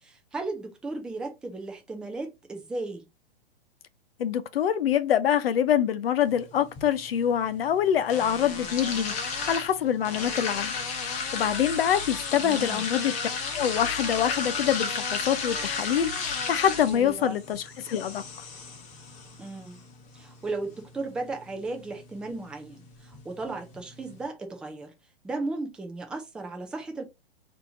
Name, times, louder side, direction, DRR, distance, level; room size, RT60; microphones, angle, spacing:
voice 1, 0.0-3.1 12.4-12.8 16.8-17.4 19.4-19.8 20.1-24.9 25.2-27.0, right 3 dB, 5° right, 0.3 m, -35 dB
voice 2, 4.2-10.7 11.0-13.1 13.5-18.2, left 9 dB, 70° left, 0.8 m, -25 dB
sound 1, 6.3-24.3, left 5 dB, 25° left, 1.0 m, -35 dB
4.1 x 2.8 x 3.7 m
hypercardioid pair, 135°, 30 cm